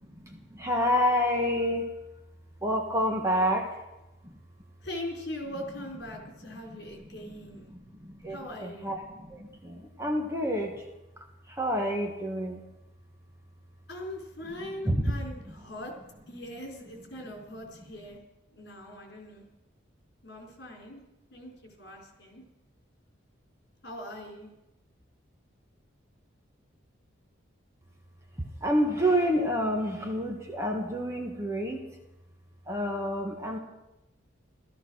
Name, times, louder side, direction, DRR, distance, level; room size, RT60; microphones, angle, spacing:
voice 1, 0.0-1.9 2.6-3.8 4.2-4.4 6.5-7.3 7.7-10.9 11.5-12.6 14.4-14.5 14.8-15.2 15.4-15.5 28.4-31.8 32.7-33.6, equal, 15° right, 2 dB, 1.4 m, -29 dB
voice 2, 4.8-7.7 8.3-8.9 13.9-15.9 16.3-18.2 18.5-19.5 20.2-21.0 21.3-22.4 23.8-24.5, left 1 dB, 55° left, 1 dB, 4.3 m, -41 dB
15.0 x 13.5 x 6.3 m, 0.96 s
head